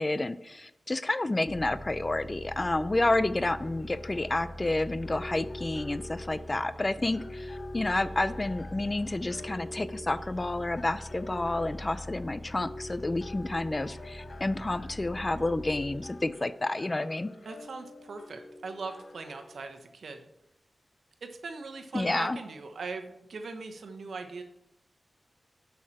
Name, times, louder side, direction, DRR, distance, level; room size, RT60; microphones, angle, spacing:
voice 1, 0.0-17.3 21.9-22.4, left 2 dB, 25° left, 15 dB, 0.4 m, -30 dB
sound 1, 1.5-16.2, left 1 dB, ahead, 3.8 m, -44 dB
sound 2, 2.6-19.6, left 1 dB, 45° left, 0.8 m, -46 dB
voice 2, 17.4-20.3 21.2-24.4, right 4 dB, 80° right, 5 dB, 1.1 m, -40 dB
11.0 x 5.7 x 4.3 m, 0.83 s
wide cardioid pair, 100°, 0 cm